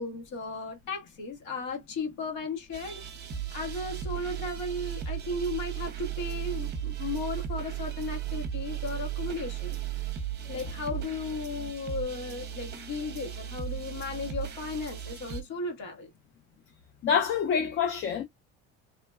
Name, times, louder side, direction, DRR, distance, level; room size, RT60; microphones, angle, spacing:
voice 1, 0.0-3.0 3.5-10.1 10.5-16.1, left 3 dB, 75° left, 1.6 m, -35 dB
sound 1, 2.7-15.4, right 11 dB, 35° right, 0.7 m, -36 dB
voice 2, 17.0-18.2, left 7 dB, 40° left, 0.5 m, -26 dB
3.2 x 2.1 x 2.3 m
cardioid pair, 145°, 31 cm